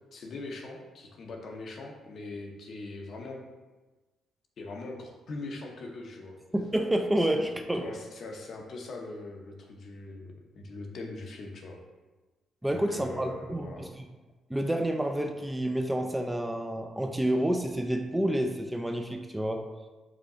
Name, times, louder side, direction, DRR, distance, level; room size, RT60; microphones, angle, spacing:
voice 1, 0.1-3.4 4.6-6.4 7.8-11.8 12.6-13.8, left 2 dB, 55° left, 1 dB, 0.7 m, -41 dB
voice 2, 6.5-7.9 12.6-14.1 14.5-19.7, right 1 dB, 10° right, 5 dB, 0.3 m, -29 dB
4.9 x 2.3 x 3.8 m, 1.2 s
cardioid pair, 90°, 0 cm